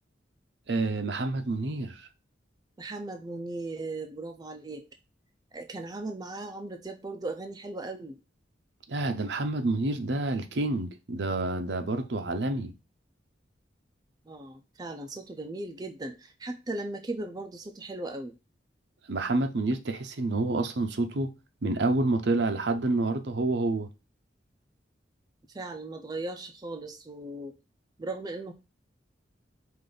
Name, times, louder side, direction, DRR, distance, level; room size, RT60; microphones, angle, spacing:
voice 1, 0.7-2.1 8.9-12.7 19.1-21.3 21.6-23.9, right 2 dB, 65° right, 0.6 m, -28 dB
voice 2, 2.8-4.9 5.5-8.2 14.3-18.3 25.5-27.6 28.0-28.5, right 2 dB, 20° right, 0.4 m, -37 dB
5.1 x 2.5 x 3.8 m
head